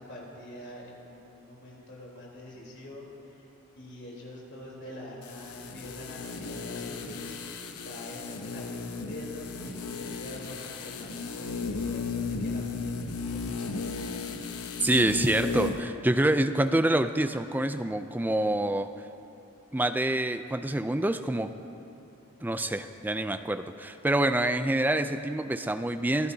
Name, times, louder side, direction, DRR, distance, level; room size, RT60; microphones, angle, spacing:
voice 1, 0.0-3.5 3.8-7.4 7.8-14.2, left 1 dB, 50° left, -4 dB, 3.7 m, -44 dB
sound 1, 5.2-15.9 16.2-16.3, left 4 dB, 85° left, 0.9 m, -35 dB
voice 2, 14.8-18.9 19.7-21.5 22.4-26.3, right 1 dB, 10° right, 9 dB, 0.4 m, -26 dB
25.0 x 15.0 x 2.8 m, 2.8 s
head